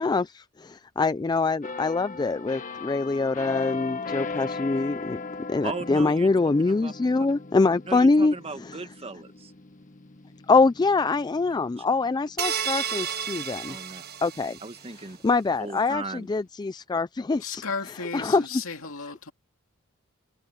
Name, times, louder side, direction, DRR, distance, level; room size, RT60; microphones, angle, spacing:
voice 1, 0.0-5.2 5.5-8.8 10.5-13.8 14.2-14.6 15.2-17.6 18.1-18.4, left 3 dB, 20° left, 0.3 m, -24 dB
sound 1, 1.6-13.2 13.6-13.8, left 4 dB, 35° left, 1.2 m, -38 dB
voice 2, 5.6-6.9 7.2-7.3 7.9-9.5 11.8-11.9 13.7-14.0 14.6-15.2 15.6-16.3, right 3 dB, 30° right, 1.1 m, -37 dB
sound 2, 12.4-14.9, right 8 dB, 50° right, 1.3 m, -31 dB
voice 3, 17.4-19.3, left 5 dB, 70° left, 2.7 m, -34 dB
head